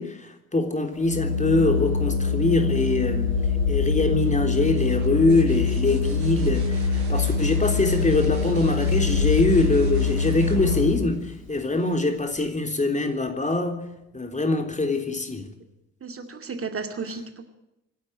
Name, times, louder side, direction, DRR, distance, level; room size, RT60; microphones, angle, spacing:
voice 1, 0.0-3.3 3.7-13.8 14.1-15.5, left 2 dB, 20° left, 6 dB, 3.6 m, -23 dB
Organ, 0.9-11.3, left 5 dB, 90° left, 2.5 m, -24 dB
sound 1, 4.4-12.0 13.8-14.4, right 4 dB, 60° right, 7.4 m, -43 dB
voice 2, 16.0-17.4, right 4 dB, 35° right, 6 dB, 2.3 m, -33 dB
26.0 x 12.0 x 9.9 m, 0.89 s
figure-of-eight pair, 50°, 39 cm